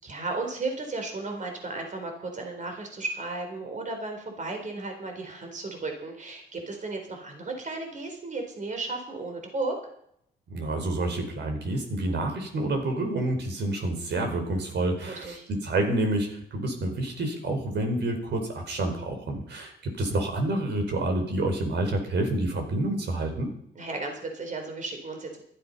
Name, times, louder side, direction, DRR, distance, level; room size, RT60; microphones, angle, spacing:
voice 1, 0.0-9.8 15.0-15.5 23.7-25.4, right 3 dB, 40° right, 3 dB, 4.3 m, -34 dB
voice 2, 10.5-23.5, right 2 dB, 60° right, 4 dB, 4.7 m, -28 dB
15.5 x 13.0 x 5.5 m, 0.70 s
cardioid pair, 90°, 20 cm